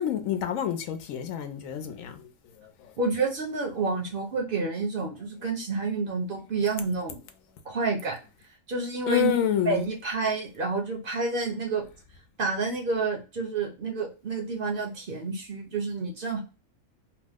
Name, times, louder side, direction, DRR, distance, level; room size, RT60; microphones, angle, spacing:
voice 1, 0.0-2.3 9.1-9.8, left 10 dB, 85° left, 1.0 m, -27 dB
voice 2, 3.0-7.2 7.6-8.2 8.7-9.3 9.7-11.8 12.4-16.4, right 4 dB, 55° right, 0.7 m, -29 dB
2.9 x 2.0 x 3.4 m
omnidirectional pair, 1.4 m